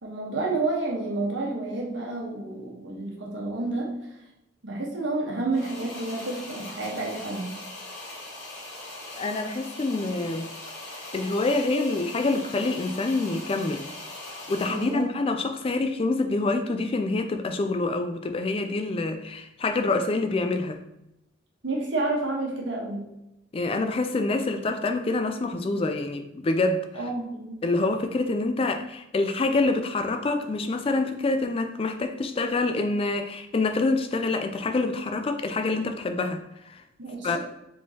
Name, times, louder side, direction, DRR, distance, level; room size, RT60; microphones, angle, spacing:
voice 1, 0.0-4.0 4.6-7.5 14.7-15.1 21.6-23.0 26.9-27.6 37.0-37.4, right 2 dB, 70° right, -2 dB, 1.2 m, -30 dB
sound 1, 5.5-15.1, left 2 dB, 70° left, 1.6 m, -41 dB
voice 2, 9.2-10.5 11.1-13.8 14.3-20.8 23.5-26.9 27.6-36.8 37.2-37.4, left 3 dB, 30° left, 7 dB, 0.3 m, -26 dB
5.0 x 3.7 x 2.8 m, 0.89 s
head